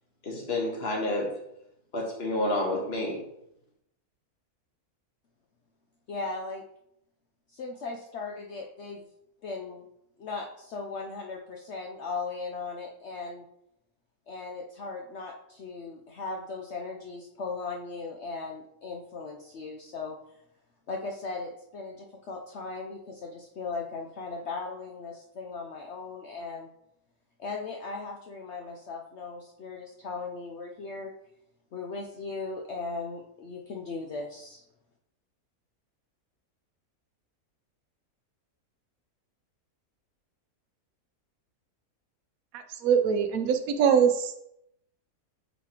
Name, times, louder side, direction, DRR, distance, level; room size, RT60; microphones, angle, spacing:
voice 1, 0.2-1.3 1.9-3.2, left 1 dB, 45° left, 0 dB, 1.5 m, -29 dB
voice 2, 6.1-6.6 7.5-9.0 9.4-9.8 10.2-13.5 14.3-20.2 20.9-26.7 27.4-31.1 31.7-34.6, left 4 dB, 60° left, 0 dB, 0.8 m, -37 dB
voice 3, 42.5-44.3, right 7 dB, 70° right, 7 dB, 1.1 m, -23 dB
8.3 x 4.1 x 2.9 m, 0.79 s
omnidirectional pair, 1.6 m